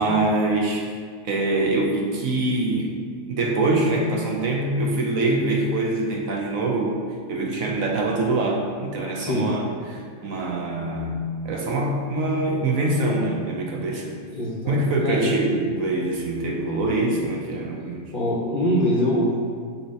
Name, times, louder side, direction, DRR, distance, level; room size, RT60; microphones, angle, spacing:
voice 1, 0.0-9.6 9.9-14.2 14.7-18.1, right 2 dB, 65° right, 0 dB, 1.0 m, -24 dB
voice 2, 9.1-9.5 14.3-15.3 18.1-19.4, equal, 45° left, -5 dB, 0.8 m, -24 dB
6.9 x 2.8 x 5.5 m, 2.1 s
omnidirectional pair, 1.7 m